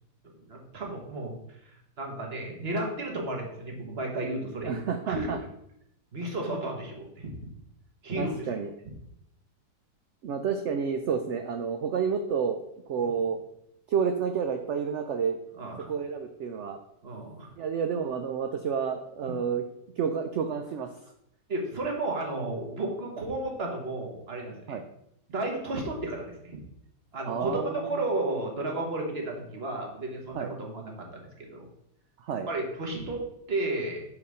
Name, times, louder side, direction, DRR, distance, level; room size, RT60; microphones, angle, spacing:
voice 1, 0.4-1.4 2.0-5.3 6.1-7.4 8.0-8.5 15.6-15.8 17.0-17.5 19.2-19.3 21.5-24.8 25.3-26.6 27.1-31.7 32.5-33.2 33.5-34.0, right 2 dB, 40° right, 0 dB, 1.6 m, -33 dB
voice 2, 4.6-5.4 8.2-8.7 10.2-12.6 12.9-13.4 13.9-15.4 15.9-16.8 17.6-19.6 20.0-20.9 24.7-24.8 27.2-27.8 30.3-30.5 32.2-32.5, right 6 dB, 70° right, 6 dB, 0.6 m, -30 dB
5.3 x 4.8 x 6.3 m, 0.78 s
omnidirectional pair, 1.8 m